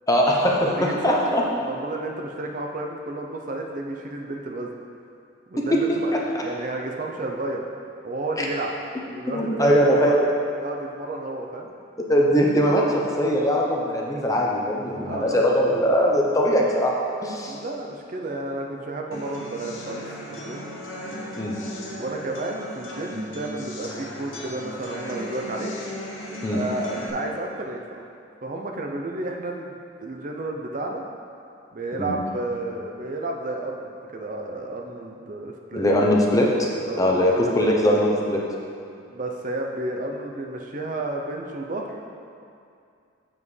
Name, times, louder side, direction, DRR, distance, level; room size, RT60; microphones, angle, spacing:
voice 1, 0.1-0.7 1.0-1.4 5.6-5.7 6.3-6.4 8.4-8.5 9.3-10.3 12.1-16.9 17.2-17.6 21.4-21.5 26.4-26.6 32.0-32.1 35.7-36.7 37.0-38.4, equal, 15° left, -2 dB, 0.7 m, -21 dB
voice 2, 0.6-4.7 5.5-7.6 8.0-10.3 10.6-11.7 15.0-15.6 17.5-20.7 22.0-25.7 26.5-28.1 28.4-31.0 31.7-36.0 36.9-37.8 39.1-42.0, right 2 dB, 40° right, 1 dB, 0.5 m, -32 dB
sound 1, 19.1-27.1, equal, 80° left, 1.1 m, -36 dB
7.3 x 7.3 x 3.2 m, 2.5 s
head